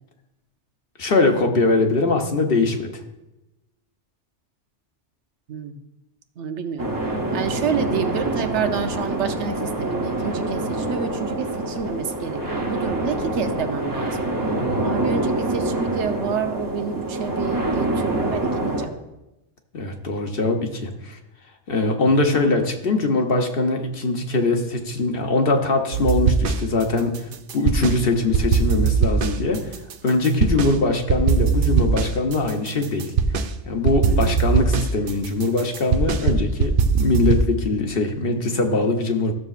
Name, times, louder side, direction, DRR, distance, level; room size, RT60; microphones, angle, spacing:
voice 1, 1.0-2.9 14.6-15.0 19.7-21.2 21.7-29.8 30.0-33.1 33.6-39.3, left 2 dB, 55° left, 3 dB, 1.1 m, -22 dB
voice 2, 6.4-14.2 14.5-18.9 34.1-34.4, right 7 dB, 85° right, 7 dB, 1.0 m, -29 dB
sound 1, 6.8-18.9, right 2 dB, 20° right, 0.7 m, -26 dB
sound 2, 25.9-26.8 27.1-28.0 28.3-30.7 31.1-33.5 33.9-37.5, right 5 dB, 60° right, 0.7 m, -20 dB
14.0 x 6.7 x 2.4 m, 0.95 s
omnidirectional pair, 1.2 m